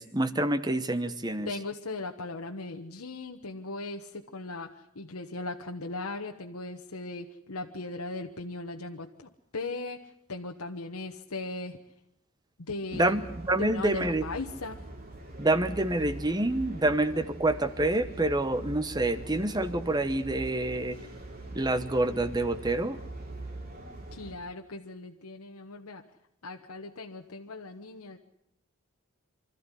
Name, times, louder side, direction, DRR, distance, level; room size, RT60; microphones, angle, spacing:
voice 1, 0.0-1.5 12.9-14.2 15.4-21.0 21.5-23.0, right 2 dB, 20° right, 13 dB, 1.0 m, -27 dB
voice 2, 1.5-11.8 12.6-13.2 13.6-14.8 24.1-26.0 26.4-28.2, left 3 dB, 85° left, 3 dB, 1.2 m, -38 dB
sound 1, 12.9-24.3, right 2 dB, 40° right, 3.3 m, -42 dB
25.0 x 13.5 x 9.9 m, 0.79 s
head